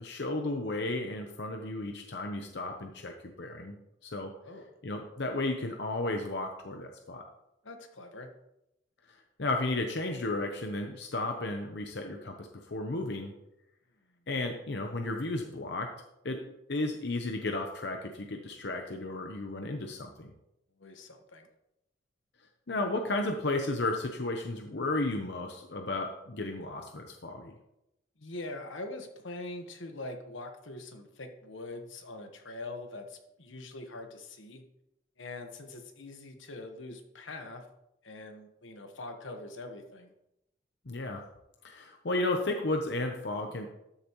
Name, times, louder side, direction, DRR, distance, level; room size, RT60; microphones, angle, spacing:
voice 1, 0.0-3.8 4.0-4.3 4.8-7.2 9.4-13.3 14.3-15.9 16.2-16.4 16.7-20.3 22.7-27.6 40.9-41.2 41.6-43.7, left 2 dB, 60° left, 4 dB, 0.8 m, -33 dB
voice 2, 7.6-8.3 20.8-21.5 28.2-34.6 35.2-37.7 38.0-40.1, left 2 dB, 90° left, 5 dB, 1.3 m, -43 dB
13.0 x 7.0 x 3.1 m, 0.85 s
head